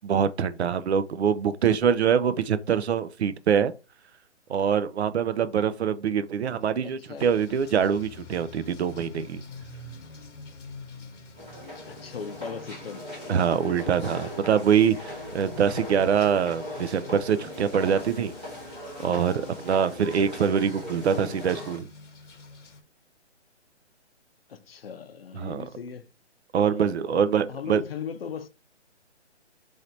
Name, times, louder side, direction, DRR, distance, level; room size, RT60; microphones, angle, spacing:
voice 1, 0.0-3.7 4.5-9.4 13.3-18.3 19.0-21.9 25.3-25.6 26.5-27.8, right 7 dB, 65° right, 0.5 m, -24 dB
voice 2, 6.8-7.3 11.9-13.0 13.5-14.3 21.1-21.4 24.5-26.1 26.6-28.5, left 7 dB, 55° left, 0.6 m, -39 dB
sound 1, 7.2-22.8, left 3 dB, 85° left, 1.0 m, -46 dB
sound 2, 11.3-21.8, left 1 dB, 5° right, 0.5 m, -40 dB
3.2 x 2.7 x 4.0 m
hypercardioid pair, 160°, 35 cm